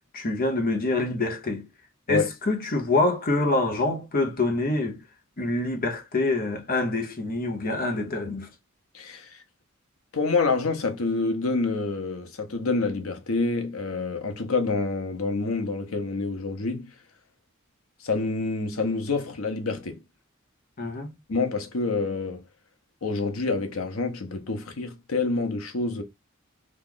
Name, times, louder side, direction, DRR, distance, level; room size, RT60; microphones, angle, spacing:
voice 1, 0.1-1.7 2.1-5.0 5.4-8.5 20.8-21.1, left 2 dB, 45° left, 0.8 m, -26 dB
voice 2, 8.9-9.4 10.1-16.9 18.0-20.0 21.3-22.4 23.0-26.0, left 3 dB, 90° left, 0.8 m, -27 dB
3.0 x 2.4 x 3.7 m
head